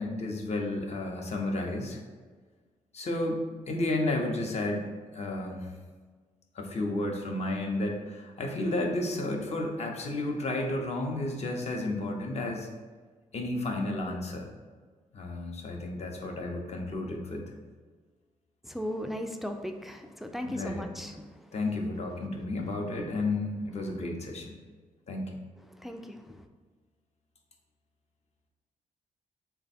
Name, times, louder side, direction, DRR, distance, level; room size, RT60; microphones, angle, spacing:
voice 1, 0.0-2.0 2.9-5.7 6.6-12.7 13.3-14.5 15.1-17.4 20.4-20.8 21.5-24.5 25.1-25.3, left 2 dB, 50° left, 1 dB, 0.7 m, -32 dB
voice 2, 18.6-21.6 23.9-24.0 25.7-26.5, equal, ahead, 5 dB, 0.3 m, -37 dB
3.3 x 2.2 x 4.1 m, 1.4 s
supercardioid pair, 60°, 15 cm